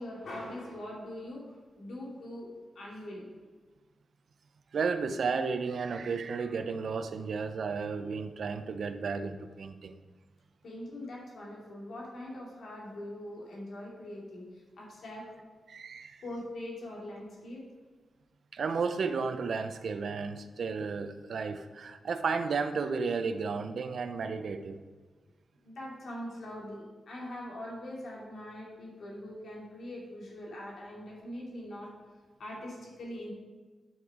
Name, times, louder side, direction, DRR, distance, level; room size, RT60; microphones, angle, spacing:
voice 1, 0.0-1.4 1.8-2.5 2.7-3.3 10.6-15.3 16.2-17.6 25.6-31.9 32.4-33.3, left 1 dB, 75° left, -3 dB, 2.7 m, -42 dB
voice 2, 4.7-9.9 15.7-16.2 18.5-24.8, right 5 dB, 70° right, 9 dB, 0.6 m, -33 dB
9.6 x 5.6 x 4.9 m, 1.4 s
cardioid pair, 85°, 0 cm